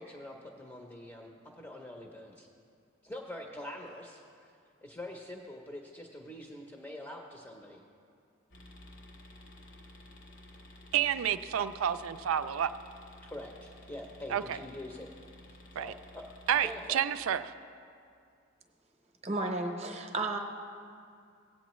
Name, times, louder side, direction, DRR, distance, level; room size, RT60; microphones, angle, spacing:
voice 1, 0.0-2.5 3.0-4.5 4.8-7.8 13.2-15.1 15.5-16.2 16.6-17.0, left 1 dB, 10° left, 1 dB, 0.6 m, -45 dB
sound 1, 8.5-16.9, left 1 dB, 60° left, 1.0 m, -53 dB
voice 2, 10.9-12.7 14.3-14.6 15.8-15.9 16.5-17.4, right 9 dB, 80° right, 12 dB, 0.4 m, -29 dB
voice 3, 19.2-20.4, right 2 dB, 30° right, 4 dB, 0.8 m, -33 dB
17.0 x 8.4 x 3.1 m, 2.4 s
head